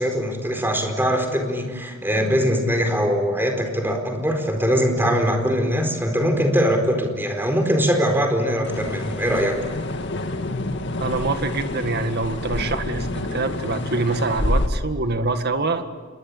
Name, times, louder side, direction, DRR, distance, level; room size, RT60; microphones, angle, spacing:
voice 1, 0.0-9.6, equal, 10° right, 4 dB, 4.5 m, -22 dB
sound 1, 8.6-14.7, left 1 dB, 60° left, 1.9 m, -27 dB
voice 2, 11.0-15.9, right 3 dB, 55° right, 8 dB, 1.9 m, -25 dB
27.0 x 21.5 x 8.7 m, 1.5 s
head